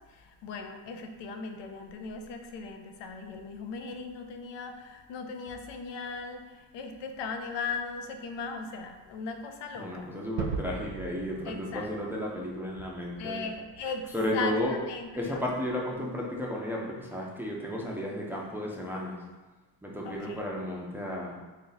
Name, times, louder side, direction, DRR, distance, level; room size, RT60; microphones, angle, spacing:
voice 1, 0.0-10.1 11.5-11.9 13.2-14.0 14.3-15.4 16.0-16.1 20.0-20.5, left 4 dB, 85° left, 5 dB, 0.6 m, -38 dB
voice 2, 9.8-13.5 14.1-14.8 15.2-19.2 19.8-21.4, left 1 dB, 5° right, -3 dB, 0.4 m, -33 dB
Gunshot gunfire / Fireworks / Boom, 10.4-15.2, right 5 dB, 70° right, 0.5 m, -40 dB
3.5 x 2.7 x 3.9 m, 1.2 s
cardioid pair, 135°, 42 cm